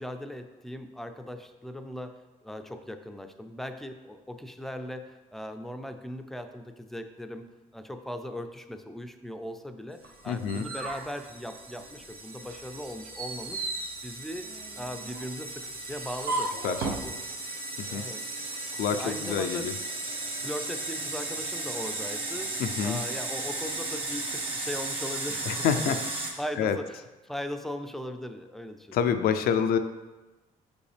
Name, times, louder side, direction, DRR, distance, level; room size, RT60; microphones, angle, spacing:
voice 1, 0.0-13.6 14.0-14.5 14.8-16.5 16.8-17.2 17.9-18.2 18.9-19.7 20.4-26.0 26.4-29.1, equal, ahead, 7 dB, 0.5 m, -39 dB
sound 1, 10.0-12.0 12.4-17.1, right 3 dB, 85° right, 0.8 m, -36 dB
sound 2, 10.2-26.3, right 2 dB, 35° right, 1.4 m, -36 dB
voice 2, 10.3-10.7 16.6-16.8 17.9-18.0 18.8-19.7 22.6-23.0 25.5-26.0 26.6-26.8 28.9-29.8, left 7 dB, 75° left, 9 dB, 0.5 m, -27 dB
6.4 x 5.2 x 3.3 m, 1.1 s
cardioid pair, 85°, 16 cm